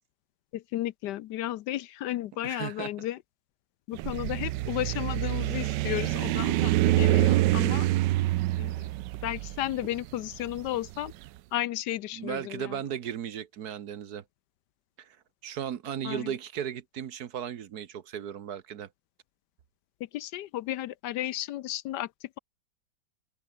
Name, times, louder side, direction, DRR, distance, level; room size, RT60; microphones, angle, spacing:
voice 1, 0.5-3.2 3.9-7.9 8.6-8.7 9.2-11.1 11.5-12.8 16.0-16.3 20.0-22.1, left 13 dB, 75° left, 1.2 m, -33 dB
voice 2, 2.4-2.9 12.1-14.2 15.0-15.1 15.4-18.9, right 9 dB, 60° right, 1.4 m, -36 dB
sound 1, 3.9-11.1, right 16 dB, 75° right, 1.2 m, -26 dB
omnidirectional pair, 2.0 m